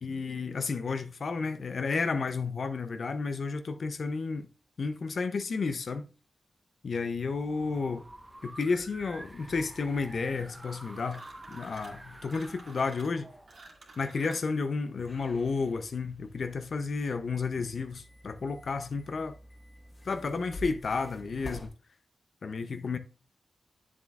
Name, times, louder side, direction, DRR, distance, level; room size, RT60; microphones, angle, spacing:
voice 1, 0.0-4.5 4.8-6.1 6.8-8.1 8.4-11.2 11.5-13.3 14.0-19.3 20.0-21.7 22.4-23.0, left 4 dB, 65° left, 0.5 m, -32 dB
sound 1, 7.1-14.2, right 1 dB, 20° right, 0.9 m, -49 dB
sound 2, 11.1-12.0 12.3-14.5, right 2 dB, 65° right, 2.1 m, -52 dB
sound 3, 15.0-21.7, left 1 dB, 35° left, 1.4 m, -48 dB
8.3 x 7.2 x 2.4 m
cardioid pair, 75°, 0 cm